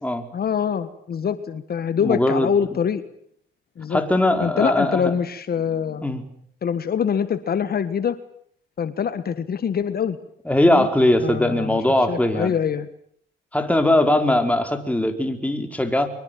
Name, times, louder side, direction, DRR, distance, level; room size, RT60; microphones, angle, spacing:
voice 1, 0.3-3.0 3.8-4.0 4.4-6.1 6.6-8.2 8.8-10.2 10.6-10.9 11.2-11.8 12.1-12.9, left 7 dB, 50° left, 12 dB, 1.6 m, -24 dB
voice 2, 2.0-2.5 3.9-5.1 6.0-6.2 10.4-12.5 13.5-16.1, left 1 dB, 5° left, 6 dB, 4.5 m, -20 dB
24.5 x 23.0 x 9.3 m, 0.65 s
cardioid pair, 90°, 20 cm